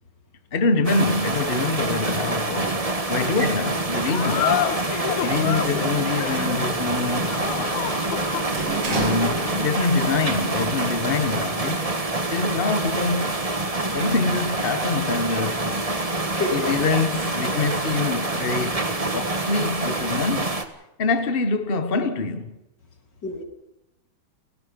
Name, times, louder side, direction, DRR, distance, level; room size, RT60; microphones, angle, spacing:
voice 1, 0.5-4.7 5.2-7.6 8.8-12.0 12.3-13.5 13.9-15.8 16.5-20.6 21.0-22.6, left 3 dB, 65° left, 0.5 m, -25 dB
sound 1, 0.8-20.6, right 2 dB, 20° right, 0.9 m, -26 dB
sound 2, 4.1-10.8, left 9 dB, 90° left, 2.8 m, -29 dB
Sliding door, 5.3-10.1 10.4-11.4, right 4 dB, 55° right, 3.9 m, -34 dB
voice 2, 9.0-9.3 16.4-16.7 23.2-23.4, left 2 dB, 35° left, 3.8 m, -28 dB
30.0 x 17.0 x 5.4 m
omnidirectional pair, 3.4 m